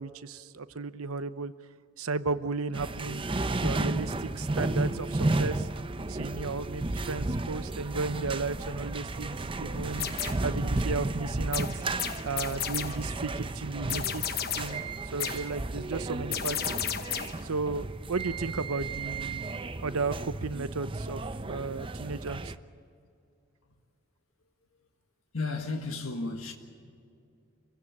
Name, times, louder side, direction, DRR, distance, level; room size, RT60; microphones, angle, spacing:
voice 1, 0.0-1.5 2.0-3.2 3.6-5.7 6.1-10.1 10.4-11.8 12.2-14.8 15.1-16.7 17.4-22.5, right 4 dB, 90° right, 0.9 m, -34 dB
sound 1, 2.7-22.6, right 2 dB, 25° right, 0.6 m, -33 dB
sound 2, 9.9-10.5 11.5-13.1 13.9-14.9 15.2-15.6 16.3-17.5, left 9 dB, 45° left, 1.0 m, -33 dB
voice 2, 25.3-26.5, left 3 dB, 75° left, 1.7 m, -33 dB
26.0 x 16.0 x 8.7 m
head